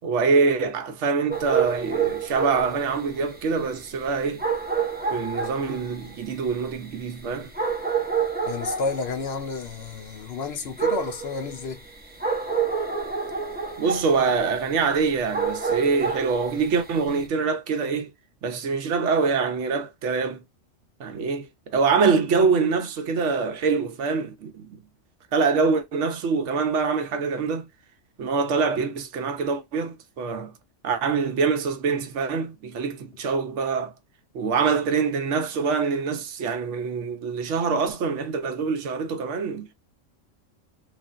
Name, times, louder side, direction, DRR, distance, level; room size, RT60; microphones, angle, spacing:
voice 1, 0.0-4.4 5.1-7.5 13.8-18.1 18.4-20.4 21.0-24.8 25.3-27.7 28.2-30.5 30.8-33.9 34.3-39.7, right 5 dB, 75° right, 1.0 m, -25 dB
sound 1, 1.3-17.2, right 6 dB, 10° right, 0.5 m, -29 dB
voice 2, 8.5-11.8, left 4 dB, 65° left, 0.8 m, -31 dB
3.3 x 2.4 x 2.4 m
omnidirectional pair, 1.3 m